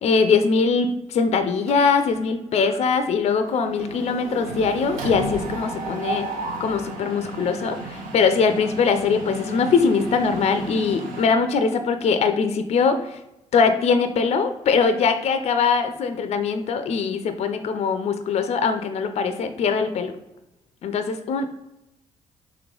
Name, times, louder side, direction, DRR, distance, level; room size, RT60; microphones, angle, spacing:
voice 1, 0.0-6.3 6.6-13.2 13.5-20.1 20.8-21.5, left 5 dB, 55° left, 9 dB, 0.4 m, -22 dB
Mechanisms, 1.7-2.3 2.6-2.8 3.1-11.2, right 2 dB, 85° right, 0.7 m, -33 dB
3.1 x 3.0 x 3.7 m, 0.90 s
supercardioid pair, 60°, 13 cm